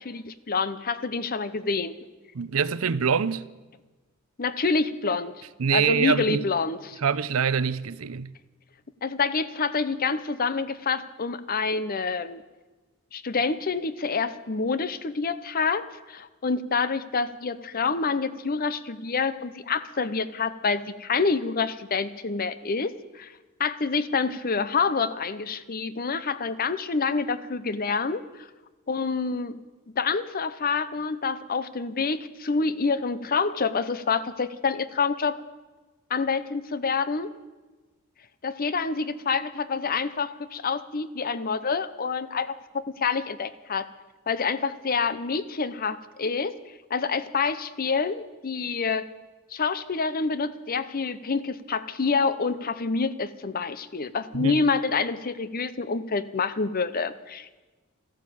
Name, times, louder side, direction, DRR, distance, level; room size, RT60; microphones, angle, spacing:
voice 1, 0.0-1.9 4.4-5.4 5.7-7.0 9.0-12.4 13.1-23.3 23.6-28.5 28.9-29.6 29.9-35.4 36.1-37.3 38.4-43.9 44.3-46.6 46.9-49.1 49.5-57.6, left 4 dB, 45° left, 0.8 m, -27 dB
voice 2, 2.3-3.5 5.6-6.5 7.0-8.3 54.3-54.6, right 6 dB, 75° right, 0.6 m, -25 dB
14.0 x 12.0 x 8.5 m
head